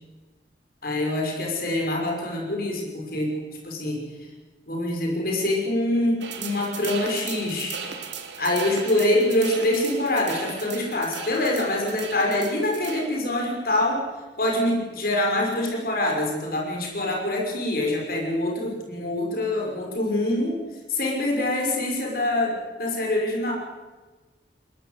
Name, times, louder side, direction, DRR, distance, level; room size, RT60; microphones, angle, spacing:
voice 1, 0.8-3.4 3.6-4.0 4.7-7.8 8.4-14.0 14.4-20.6 20.9-23.5, left 1 dB, 55° left, -1 dB, 5.9 m, -25 dB
sound 1, 6.2-13.1, right 7 dB, 80° right, 2.9 m, -37 dB
21.5 x 20.5 x 8.1 m, 1.3 s
head